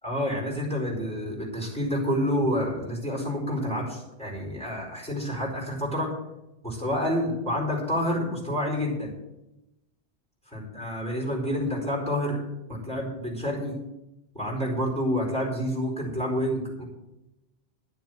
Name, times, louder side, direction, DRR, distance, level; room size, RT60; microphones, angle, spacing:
voice 1, 0.0-6.1 6.6-9.1 10.5-12.4 12.7-13.7 14.3-16.9, equal, 5° left, -3 dB, 4.5 m, -28 dB
11.5 x 7.5 x 7.8 m, 0.92 s
omnidirectional pair, 1.2 m